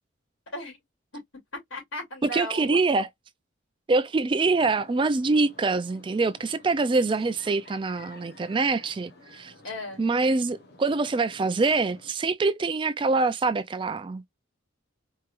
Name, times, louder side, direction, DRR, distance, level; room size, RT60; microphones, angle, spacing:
voice 1, 1.7-2.8 9.6-10.0, left 1 dB, 75° left, 2.8 m, -35 dB
voice 2, 2.3-3.1 3.9-9.5 10.0-14.2, right 3 dB, 25° right, 0.3 m, -25 dB
sound 1, 4.4-12.1, left 2 dB, 50° left, 1.0 m, -52 dB
4.6 x 3.1 x 2.5 m
head